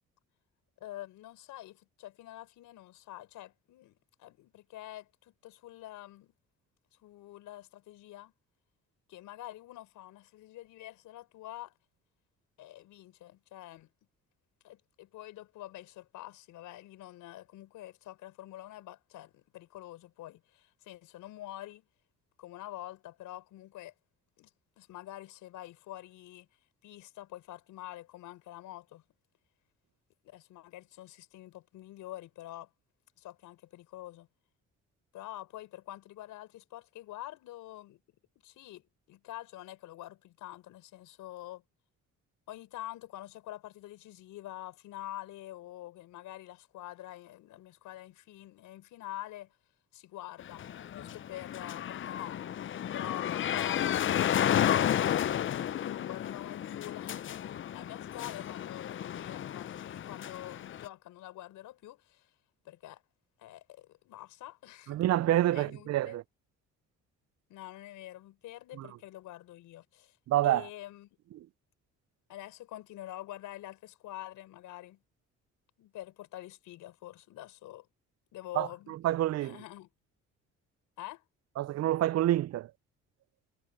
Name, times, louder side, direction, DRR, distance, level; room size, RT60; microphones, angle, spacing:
voice 1, 0.8-6.3 7.0-8.3 9.1-11.7 12.6-13.9 14.6-21.8 22.4-23.9 24.4-24.5 24.8-26.5 26.8-29.0 30.2-32.7 33.2-34.3 35.1-38.0 38.4-41.6 42.5-49.5 49.9-50.7 50.9-52.4 52.9-62.3 62.6-63.0 63.4-65.0 65.5-66.2 67.5-70.1 70.4-71.1 72.3-75.0 75.8-77.9 78.3-79.0 79.4-79.9 81.0-81.2, left 15 dB, 90° left, 5.9 m, -46 dB
sound 1, 50.4-60.9, left 10 dB, 40° left, 0.5 m, -32 dB
voice 2, 64.9-66.2 68.8-68.9 70.3-70.7 78.5-79.6 81.6-82.7, right 13 dB, 60° right, 0.4 m, -28 dB
cardioid pair, 90°, 30 cm